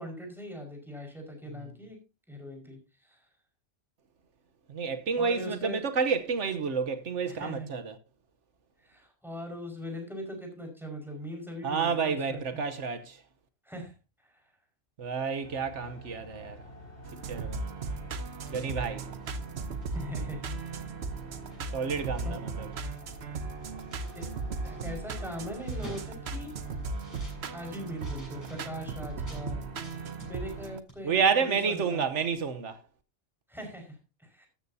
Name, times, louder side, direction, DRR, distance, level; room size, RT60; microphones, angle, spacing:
voice 1, 0.0-2.0 2.3-3.3 5.2-5.8 7.3-7.7 8.8-12.4 13.6-13.9 14.2-14.4 19.9-20.7 22.0-22.5 24.1-24.3 24.6-26.5 27.5-32.1 33.5-34.5, equal, ahead, 5.2 m, -41 dB
voice 2, 4.7-7.9 11.6-13.2 15.0-16.6 17.3-17.6 18.5-19.1 21.7-22.7 31.0-32.8, right 5 dB, 80° right, 1.3 m, -30 dB
sound 1, 15.4-30.7, left 1 dB, 70° left, 4.0 m, -49 dB
sound 2, 17.0-30.8, right 4 dB, 65° right, 1.2 m, -37 dB
sound 3, 18.2-20.2 20.7-20.8 21.1-22.4 22.6-29.5 29.8-30.6 30.9-31.0, equal, 15° left, 7.2 m, -52 dB
13.5 x 13.5 x 2.8 m
omnidirectional pair, 1.2 m